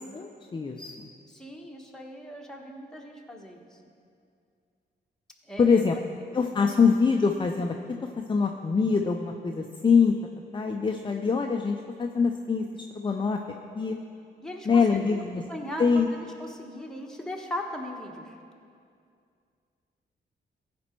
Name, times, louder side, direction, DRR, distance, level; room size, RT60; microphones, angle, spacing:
voice 1, 0.1-1.1 5.6-6.0 6.3-7.7 8.2-10.1 10.5-13.4 13.7-14.0 14.7-15.4 15.8-16.1, left 5 dB, 25° left, 3 dB, 0.5 m, -24 dB
voice 2, 1.3-3.8 5.5-5.8 14.4-15.2 15.5-18.3, equal, 5° left, 0 dB, 1.4 m, -38 dB
15.0 x 5.2 x 4.5 m, 2.4 s
cardioid pair, 75°, 19 cm